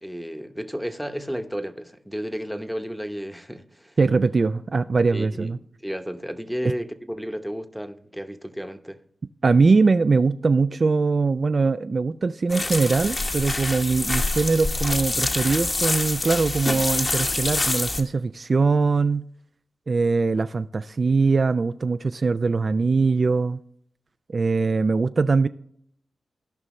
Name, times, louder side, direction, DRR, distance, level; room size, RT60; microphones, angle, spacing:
voice 1, 0.0-4.0 5.1-5.5 5.8-9.0, equal, ahead, 0.9 m, -32 dB
voice 2, 4.0-5.6 6.6-6.7 9.4-19.2 19.9-23.6 24.3-25.5, right 4 dB, 50° right, 0.3 m, -21 dB
sound 1, 12.5-18.0, left 2 dB, 40° left, 1.3 m, -26 dB
16.0 x 5.4 x 3.1 m
cardioid pair, 60°, 0 cm